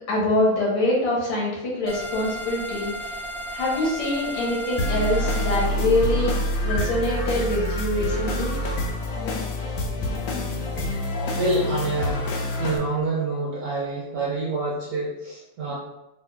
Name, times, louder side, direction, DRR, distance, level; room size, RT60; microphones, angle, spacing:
voice 1, 0.1-2.9 3.5-6.3 6.6-8.5, left 1 dB, 90° left, -4 dB, 2.1 m, -24 dB
sound 1, 1.9-5.7, right 1 dB, 60° left, 0.6 m, -34 dB
sound 2, 4.8-12.8, left 1 dB, 75° left, 1.2 m, -26 dB
voice 2, 11.3-12.3 12.6-15.7, right 2 dB, 65° right, -5 dB, 1.1 m, -27 dB
4.5 x 2.6 x 2.3 m, 0.92 s
omnidirectional pair, 2.4 m